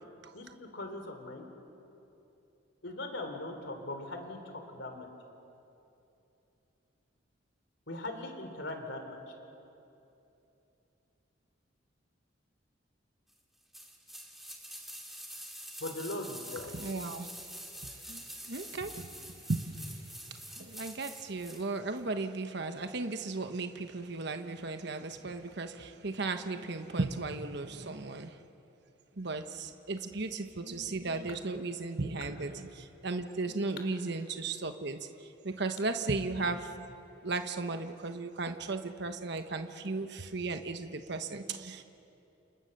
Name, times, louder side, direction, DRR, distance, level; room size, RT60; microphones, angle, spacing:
voice 1, 0.3-1.5 2.8-5.1 7.9-9.2 15.8-16.7, left 2 dB, 70° left, 5 dB, 3.4 m, -40 dB
sound 1, 13.7-21.7 22.0-22.1, equal, ahead, 2.4 m, -46 dB
voice 2, 16.7-17.3 17.8-20.0 20.3-28.4 29.2-36.9 37.2-41.8, right 3 dB, 60° right, 7 dB, 1.2 m, -36 dB
29.5 x 28.5 x 6.7 m, 2.9 s
head